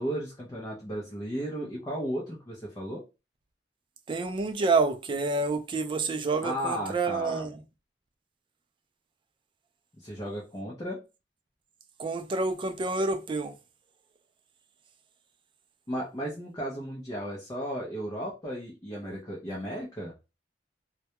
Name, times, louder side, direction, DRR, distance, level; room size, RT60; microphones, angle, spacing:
voice 1, 0.0-3.0 6.4-7.5 10.0-11.0 15.9-20.1, equal, 20° left, 0.5 m, -35 dB
voice 2, 4.1-7.5 12.0-13.5, right 3 dB, 25° right, 0.3 m, -28 dB
2.2 x 2.1 x 2.8 m
head